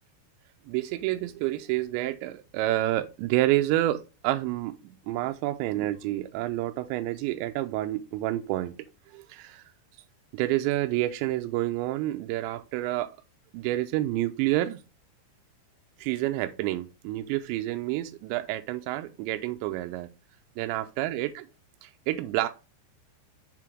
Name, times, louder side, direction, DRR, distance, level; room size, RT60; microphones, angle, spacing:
voice 1, 0.7-8.8 9.1-9.7 10.3-13.1 13.5-14.8 16.0-20.1 20.6-21.5 21.8-22.5, right 15 dB, 85° right, 2.8 m, -29 dB
6.7 x 3.6 x 4.5 m
omnidirectional pair, 5.2 m